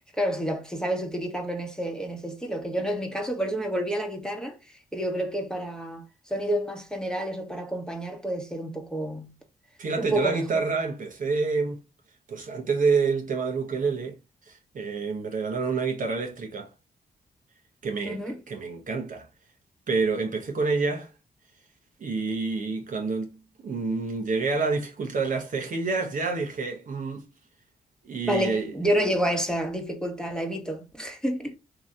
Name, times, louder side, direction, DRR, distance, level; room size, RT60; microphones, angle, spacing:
voice 1, 0.2-4.6 4.9-9.4 10.0-10.6 18.0-18.4 28.3-31.5, equal, 5° left, 1.1 m, -29 dB
voice 2, 9.8-11.8 12.3-14.2 14.5-16.7 17.8-19.3 19.9-21.1 22.0-27.3 28.0-28.7, right 4 dB, 55° right, 1.0 m, -28 dB
2.9 x 2.8 x 3.7 m
supercardioid pair, 50°, 16 cm